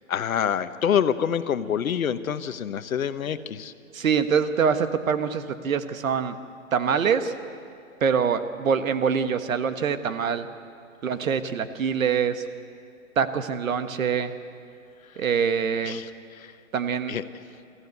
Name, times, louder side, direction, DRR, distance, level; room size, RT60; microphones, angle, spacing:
voice 1, 0.1-3.7 15.9-16.0 16.4-16.5 17.1-17.2, left 8 dB, 75° left, 12 dB, 1.1 m, -26 dB
voice 2, 3.9-6.3 6.7-7.3 8.0-10.5 11.0-12.4 13.2-14.3 15.2-16.0 16.7-17.1, right 6 dB, 70° right, 10 dB, 1.5 m, -24 dB
24.5 x 14.5 x 8.3 m, 2.3 s
hypercardioid pair, 165°, 42 cm